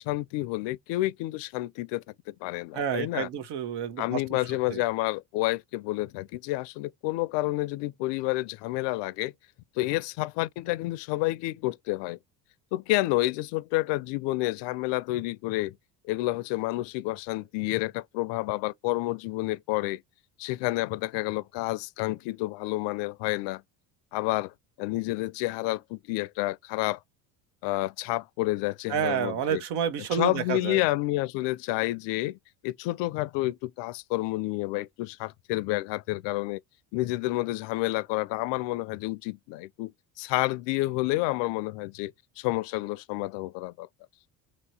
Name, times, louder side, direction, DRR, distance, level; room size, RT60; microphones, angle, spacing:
voice 1, 0.0-3.3 4.0-9.3 9.8-12.2 12.7-15.8 16.0-20.0 20.4-23.6 24.1-27.0 27.6-29.6 30.1-32.4 32.6-36.6 36.9-39.9 40.2-43.9, left 19 dB, 70° left, 0.6 m, -29 dB
voice 2, 2.7-4.2 4.7-4.8 28.9-30.8, right 8 dB, 60° right, 1.1 m, -29 dB
3.1 x 2.8 x 4.1 m
supercardioid pair, 85°, 46 cm